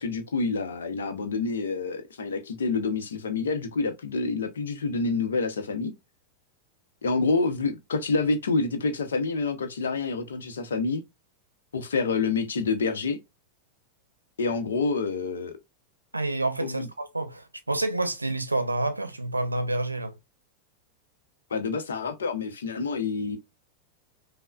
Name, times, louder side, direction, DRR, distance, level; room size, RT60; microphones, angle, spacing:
voice 1, 0.0-5.9 7.0-11.0 11.7-13.2 14.4-15.6 16.6-16.9 21.5-23.4, left 4 dB, 65° left, 0.7 m, -27 dB
voice 2, 16.1-20.2, right 2 dB, 85° right, 0.6 m, -28 dB
5.3 x 2.1 x 2.2 m
figure-of-eight pair, 90°, 0 cm